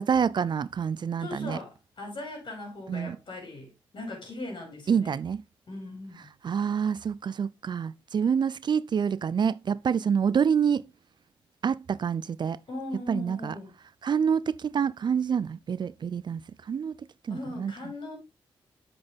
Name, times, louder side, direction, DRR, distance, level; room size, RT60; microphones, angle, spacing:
voice 1, 0.0-1.6 2.9-3.2 4.9-5.4 6.4-10.8 11.6-12.6 13.1-13.5 14.0-17.0 17.2-17.7, right 7 dB, 50° right, 0.4 m, -27 dB
voice 2, 1.2-5.2 5.7-6.3 12.7-13.7 17.3-18.2, left 2 dB, 55° left, 5.1 m, -39 dB
7.8 x 6.1 x 3.5 m
supercardioid pair, 50°, 10 cm